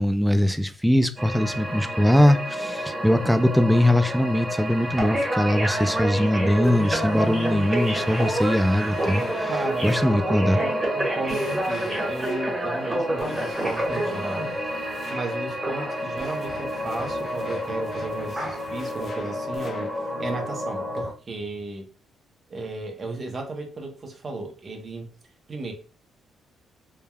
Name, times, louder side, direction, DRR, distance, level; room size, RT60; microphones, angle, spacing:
voice 1, 0.0-9.5 9.8-10.6, left 1 dB, ahead, 0.3 m, -21 dB
sound 1, 1.2-21.1, equal, 20° right, 1.2 m, -28 dB
sound 2, 6.6-10.3 11.3-12.7 13.2-15.5 16.2-20.0, left 4 dB, 55° left, 0.5 m, -41 dB
voice 2, 9.5-9.9 10.6-14.8 15.1-21.9 22.5-25.1 25.5-25.7, right 2 dB, 40° right, 0.7 m, -34 dB
3.3 x 2.2 x 2.2 m
cardioid pair, 90°, 0 cm